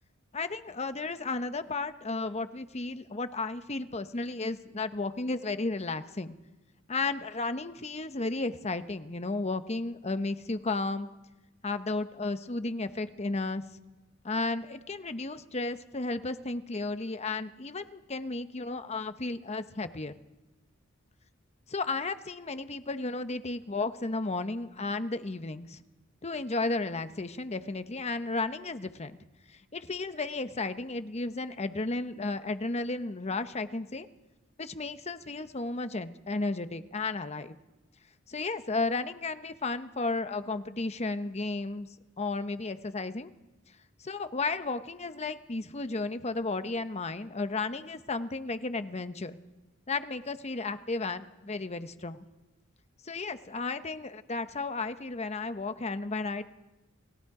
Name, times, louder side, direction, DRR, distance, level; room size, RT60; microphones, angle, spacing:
voice 1, 0.3-6.3 6.9-11.1 11.6-13.6 14.2-20.1 21.7-25.8 26.2-29.2 29.5-34.1 34.6-37.6 38.3-41.9 42.2-43.3 44.0-49.4 49.9-52.2 53.0-56.4, left 3 dB, 35° left, 10 dB, 0.9 m, -33 dB
29.5 x 18.5 x 4.9 m, 1.0 s
head